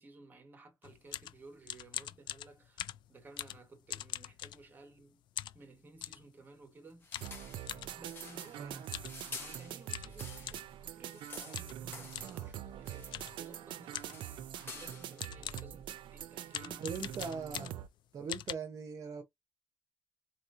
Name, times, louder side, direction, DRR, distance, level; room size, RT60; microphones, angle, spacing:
voice 1, 0.0-5.2 5.5-7.1 7.9-16.9, right 3 dB, 25° right, 1.3 m, -57 dB
sound 1, 0.8-5.0 5.4-6.3 7.1-7.9 8.8-9.2 9.5-9.6 9.9-10.7 11.5-11.8 12.1-12.4 13.1-13.4 13.9-14.3 14.8-14.9 15.2-15.8 16.5-17.9 18.3-18.5, left 12 dB, 75° left, 0.4 m, -43 dB
sound 2, 7.0-10.6 10.9-12.5 12.8-13.5 13.7-15.2, left 4 dB, 25° left, 1.5 m, -50 dB
sound 3, 7.2-17.9, right 11 dB, 85° right, 0.4 m, -44 dB
voice 2, 16.8-17.7 18.1-19.2, right 5 dB, 45° right, 0.8 m, -40 dB
4.3 x 3.0 x 2.5 m
cardioid pair, 170°, 8 cm